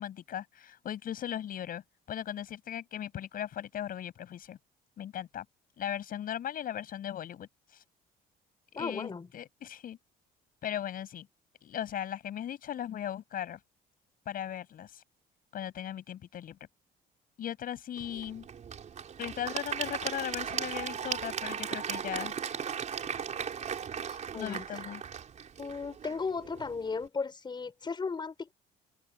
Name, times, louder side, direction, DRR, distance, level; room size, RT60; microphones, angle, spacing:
voice 1, 0.0-4.6 5.0-5.4 5.8-7.5 8.8-10.0 10.6-11.3 11.6-13.6 14.3-15.0 15.5-16.6 17.4-18.5 19.2-22.3 24.3-25.0, left 10 dB, 55° left, 7.8 m, -38 dB
voice 2, 8.7-9.3 24.1-24.8 25.6-28.5, left 4 dB, 25° left, 6.8 m, -36 dB
Applause / Crowd, 18.0-27.0, right 7 dB, 45° right, 4.7 m, -37 dB
open air
cardioid pair, 110°, 17 cm